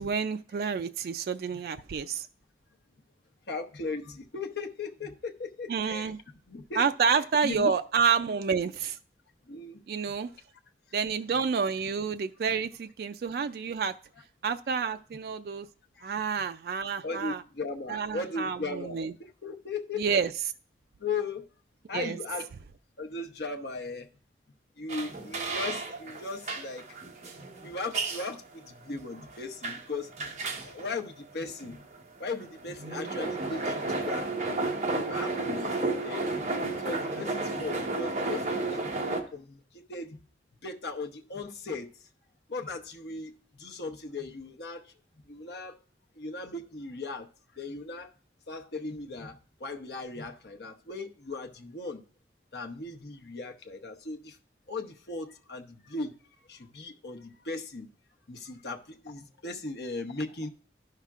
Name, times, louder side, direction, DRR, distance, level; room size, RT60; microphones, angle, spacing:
voice 1, 0.0-2.3 5.7-6.2 6.8-9.0 9.9-10.3 10.9-13.9 14.4-15.7 16.0-17.4 17.9-19.1 20.0-20.3 21.9-22.2, right 6 dB, 55° right, 0.3 m, -29 dB
voice 2, 3.5-6.1 6.5-7.7 9.5-9.8 16.0-16.1 17.0-19.1 19.4-20.2 21.0-21.4 21.9-22.5 23.0-24.1 24.8-26.8 27.6-30.1 30.6-31.8 32.2-34.3 35.1-35.8 36.0-36.3 36.8-38.9 39.3-39.6 39.9-40.2 40.6-41.9 42.5-43.3 43.6-44.8 45.3-45.8 46.2-47.3 47.6-48.1 48.5-52.0 52.5-54.3 54.7-56.1 56.5-57.9 58.3-60.5, left 3 dB, 70° left, 0.9 m, -37 dB
sound 1, 24.9-39.2, right 3 dB, 40° right, 1.1 m, -33 dB
12.5 x 5.7 x 2.4 m
head